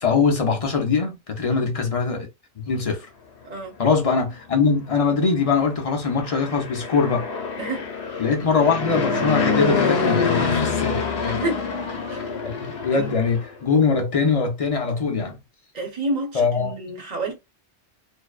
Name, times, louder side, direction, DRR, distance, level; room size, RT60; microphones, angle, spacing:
voice 1, 0.0-2.3 2.7-3.1 3.8-7.3 8.2-11.4 12.6-15.4 16.3-16.7, left 5 dB, 40° left, 0.6 m, -22 dB
Fixed-wing aircraft airplane, 6.1-13.5, left 5 dB, 70° left, 0.9 m, -26 dB
voice 2, 11.3-11.6 12.1-12.2 12.9-13.2 15.7-17.3, right 2 dB, 45° right, 0.8 m, -29 dB
2.5 x 2.1 x 2.3 m
omnidirectional pair, 1.1 m